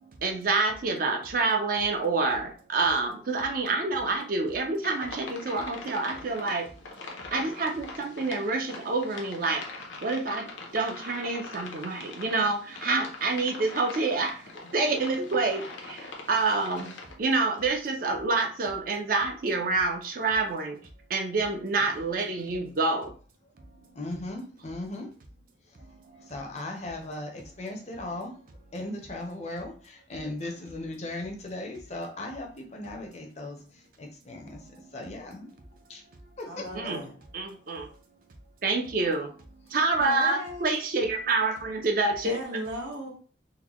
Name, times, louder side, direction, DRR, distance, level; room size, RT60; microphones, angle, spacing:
voice 1, 0.2-6.6 7.3-9.6 10.0-10.4 10.7-14.3 14.7-15.6 15.9-16.0 16.3-16.9 17.2-20.8 21.1-23.1 36.7-37.0 37.3-37.9 38.6-39.3 39.7-42.4, right 3 dB, 50° right, 3 dB, 0.5 m, -27 dB
sound 1, 4.8-17.1, left 3 dB, 75° left, 0.7 m, -42 dB
voice 2, 23.9-25.1 25.7-25.8 26.2-28.3 28.7-35.5 35.9-36.0 36.4-36.6 39.7-39.8 40.3-40.4, left 2 dB, 35° left, 2 dB, 0.6 m, -38 dB
voice 3, 36.5-37.1 40.0-40.8 42.2-43.1, equal, 80° right, 0 dB, 1.0 m, -36 dB
3.8 x 2.1 x 3.0 m, 0.40 s
head